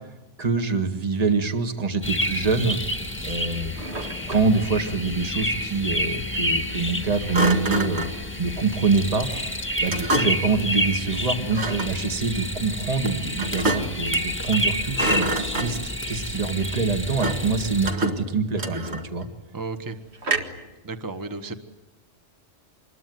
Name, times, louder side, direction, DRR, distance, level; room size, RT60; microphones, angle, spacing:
voice 1, 0.4-2.8 3.2-3.7 4.3-8.1 8.4-9.3 9.8-15.3 15.6-19.3, right 4 dB, 30° right, 6 dB, 1.8 m, -25 dB
sound 1, 2.0-17.9, left 1 dB, 10° left, 1.6 m, -29 dB
Thump thud, 3.8-4.6 7.3-8.2 9.9-10.5 11.5-12.0 13.4-14.1 14.4-14.7 14.9-16.0 17.2-17.5 17.9-19.2 20.2-20.7, right 1 dB, 60° right, 2.2 m, -27 dB
voice 2, 19.5-20.0 20.8-21.5, right 3 dB, 15° right, 8 dB, 1.2 m, -33 dB
26.5 x 21.5 x 9.4 m, 1.1 s
omnidirectional pair, 1.3 m